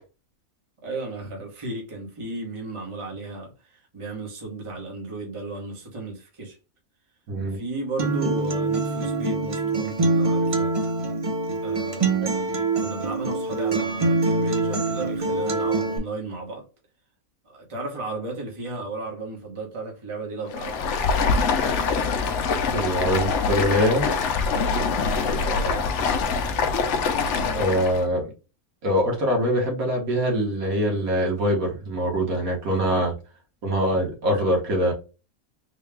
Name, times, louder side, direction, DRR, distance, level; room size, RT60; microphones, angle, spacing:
voice 1, 0.8-6.6 7.5-10.7 11.6-12.5 12.8-16.7 17.4-20.9 25.4-25.9, right 2 dB, 25° right, 1.1 m, -34 dB
Acoustic guitar, 8.0-16.0, right 3 dB, 40° right, 0.4 m, -24 dB
Stream, 20.5-28.0, left 5 dB, 65° left, 0.8 m, -24 dB
voice 2, 22.7-24.1 27.5-28.3 28.8-33.1 33.6-34.9, equal, 75° right, 1.7 m, -23 dB
3.9 x 2.3 x 3.4 m
omnidirectional pair, 1.5 m